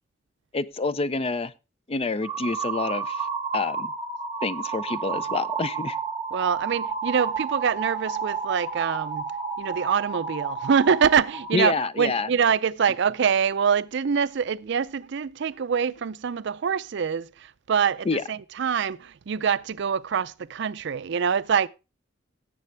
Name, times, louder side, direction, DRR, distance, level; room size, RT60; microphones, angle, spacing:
voice 1, 0.5-1.5 1.9-3.2 3.5-3.9 4.4-6.0 11.5-12.3 18.1-18.2, left 3 dB, 30° left, 0.5 m, -27 dB
sound 1, 2.2-11.5, right 5 dB, 20° right, 1.3 m, -31 dB
voice 2, 6.3-9.2 9.6-21.7, right 7 dB, 65° right, 0.5 m, -25 dB
17.0 x 7.5 x 3.3 m
head